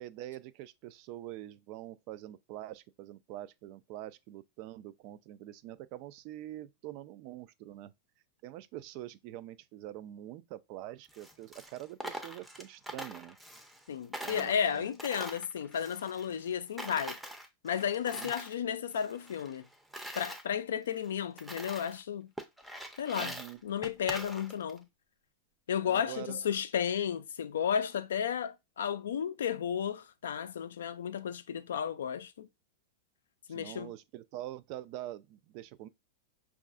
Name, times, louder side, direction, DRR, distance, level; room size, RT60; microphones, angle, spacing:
voice 1, 0.0-7.9 8.4-13.4 14.2-14.9 18.1-18.3 23.2-23.6 25.9-26.4 33.5-35.9, right 14 dB, 50° right, 0.3 m, -45 dB
Coin (dropping), 11.0-13.9 14.1-16.5 16.8-18.6 18.9-20.4 21.0-21.1 21.4-22.0 22.4-24.8, right 1 dB, 5° right, 0.5 m, -44 dB
voice 2, 13.9-17.2 17.6-19.7 20.1-22.3 23.0-24.9 25.7-32.5 33.5-33.9, left 8 dB, 80° left, 0.3 m, -33 dB
5.2 x 2.4 x 2.4 m
hypercardioid pair, 105°, 0 cm